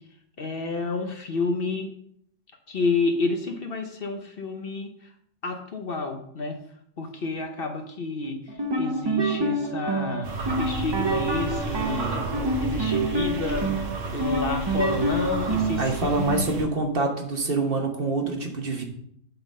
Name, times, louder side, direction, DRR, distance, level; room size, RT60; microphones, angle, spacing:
voice 1, 0.4-1.9 2.7-4.9 5.4-6.6 7.0-8.4 8.8-10.3 10.6-12.2 12.6-16.4, left 3 dB, 50° left, 4 dB, 1.0 m, -29 dB
sound 1, 8.5-15.9, right 2 dB, 30° right, 0.5 m, -27 dB
sound 2, 10.2-16.7, right 2 dB, 80° right, 1.4 m, -32 dB
voice 2, 15.8-18.8, right 3 dB, 50° right, 3 dB, 1.3 m, -26 dB
8.2 x 3.9 x 5.3 m, 0.69 s
omnidirectional pair, 1.3 m